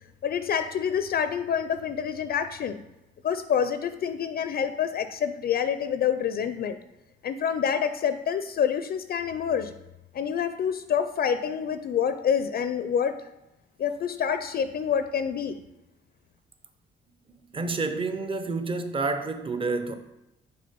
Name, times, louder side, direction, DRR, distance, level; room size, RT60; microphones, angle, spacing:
voice 1, 0.2-2.8 3.2-6.8 7.2-9.7 10.1-13.1 13.8-15.6, left 8 dB, 50° left, 0.4 m, -27 dB
voice 2, 17.5-20.0, right 3 dB, 25° right, 0.7 m, -29 dB
6.8 x 3.7 x 5.1 m
cardioid pair, 90°, 20 cm